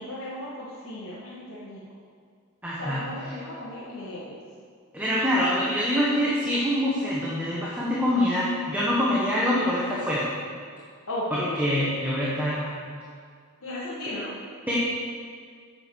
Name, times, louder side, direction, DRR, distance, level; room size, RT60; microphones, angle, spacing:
voice 1, 0.0-1.8 2.8-4.3 11.1-12.0 13.6-14.4, left 1 dB, 85° left, -8 dB, 1.9 m, -35 dB
voice 2, 2.6-3.0 4.9-10.3 11.3-12.8 14.7-14.8, equal, 10° right, -7 dB, 1.3 m, -25 dB
7.9 x 7.6 x 6.4 m, 2.1 s
head